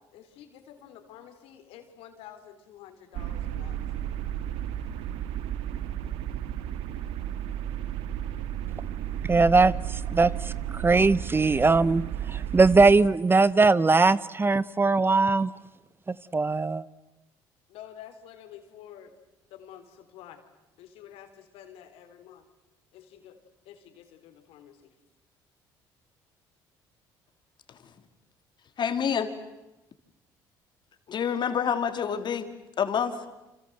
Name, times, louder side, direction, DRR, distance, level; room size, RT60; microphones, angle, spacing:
voice 1, 0.1-3.8 17.7-19.1 19.5-20.4 20.8-22.4 22.9-23.4 23.7-24.8, left 10 dB, 80° left, 3.7 m, -49 dB
sound 1, 3.1-13.0, right 11 dB, 80° right, 1.6 m, -33 dB
voice 2, 9.2-12.0 12.3-15.5 16.1-16.8, right 3 dB, 25° right, 0.9 m, -21 dB
voice 3, 28.8-29.3 31.1-32.5 32.8-33.2, left 7 dB, 50° left, 3.1 m, -27 dB
29.0 x 26.0 x 7.9 m
supercardioid pair, 75°, 10 cm